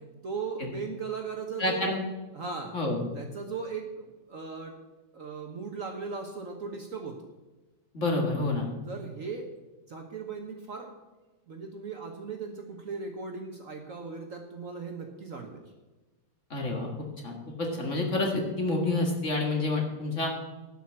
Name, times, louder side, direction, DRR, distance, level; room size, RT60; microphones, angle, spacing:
voice 1, 0.0-1.8 2.3-2.7 3.1-4.7 5.1-7.2 8.8-9.5 9.9-10.9 11.5-15.6, right 5 dB, 50° right, 3 dB, 1.3 m, -38 dB
voice 2, 1.6-2.1 2.7-3.1 7.9-8.7 16.5-16.9 17.2-20.3, left 2 dB, 40° left, 1 dB, 2.0 m, -28 dB
12.0 x 5.9 x 7.4 m, 1.2 s
omnidirectional pair, 2.1 m